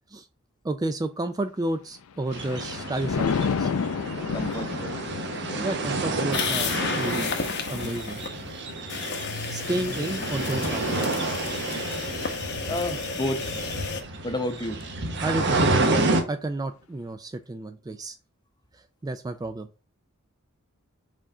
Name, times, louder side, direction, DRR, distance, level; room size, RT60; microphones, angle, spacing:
voice 1, 0.6-3.7 5.6-7.4 7.7-8.2 9.5-10.9 15.2-18.2 18.7-19.7, right 2 dB, 20° right, 0.4 m, -31 dB
Thunder, 1.9-13.4 13.9-14.2, left 5 dB, 85° left, 0.5 m, -33 dB
sound 1, 2.3-16.2, right 2 dB, 55° right, 1.1 m, -30 dB
voice 2, 4.3-5.0 5.5-5.8 12.7-13.5 14.2-14.9, left 1 dB, 20° left, 0.8 m, -31 dB
sound 2, 6.3-8.3 8.9-14.0, left 5 dB, 55° left, 0.9 m, -32 dB
5.0 x 3.7 x 5.3 m
head